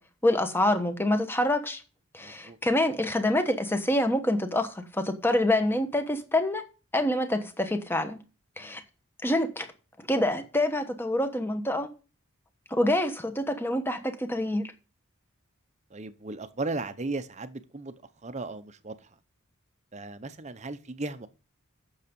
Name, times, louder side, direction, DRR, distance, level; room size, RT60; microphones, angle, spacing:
voice 1, 0.2-1.8 2.1-6.6 6.9-8.2 8.6-8.8 9.2-9.7 10.1-11.9 12.7-14.7, left 1 dB, 10° left, 1.1 m, -26 dB
voice 2, 2.2-2.6 8.6-8.8 15.9-17.9 18.2-18.9 19.9-21.3, right 3 dB, 30° right, 0.7 m, -36 dB
8.4 x 6.6 x 5.2 m
head